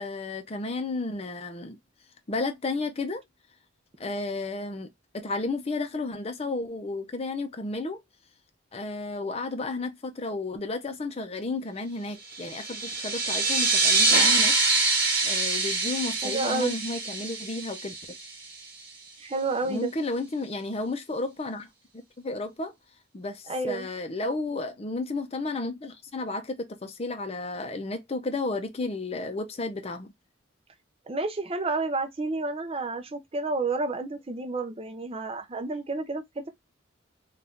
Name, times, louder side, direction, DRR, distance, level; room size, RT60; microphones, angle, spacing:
voice 1, 0.0-1.8 2.3-3.2 4.0-8.0 8.7-14.9 15.2-17.9 19.7-21.7 21.9-22.7 23.1-30.1, left 3 dB, 30° left, 0.5 m, -33 dB
sound 1, 12.3-18.5, right 3 dB, 50° right, 1.1 m, -25 dB
voice 2, 16.2-16.7 19.2-19.9 23.5-23.9 31.1-36.5, right 3 dB, 30° right, 0.5 m, -30 dB
2.7 x 2.4 x 3.5 m
head